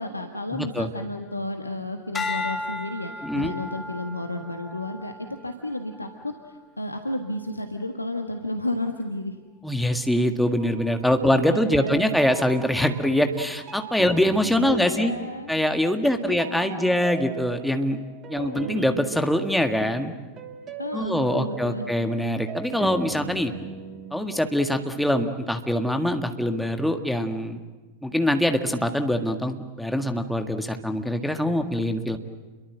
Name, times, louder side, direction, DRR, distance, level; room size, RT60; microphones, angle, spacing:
voice 1, 0.0-9.4 11.5-12.0 14.0-14.1 14.6-15.6 16.0-17.0 18.3-19.0 20.8-21.9 31.5-31.7, left 1 dB, 85° left, 5 dB, 1.4 m, -32 dB
voice 2, 0.5-0.9 3.2-3.5 9.6-15.1 15.5-18.0 18.3-20.1 20.9-23.5 24.1-27.6 28.0-32.2, left 1 dB, ahead, 6 dB, 1.8 m, -24 dB
sound 1, 2.1-6.6 7.2-7.6, left 3 dB, 15° left, 2.6 m, -35 dB
sound 2, 10.6-11.1 11.6-16.1 16.4-25.2, right 5 dB, 30° right, 2.7 m, -39 dB
29.5 x 23.0 x 7.7 m, 1.3 s
figure-of-eight pair, 90°, 0 cm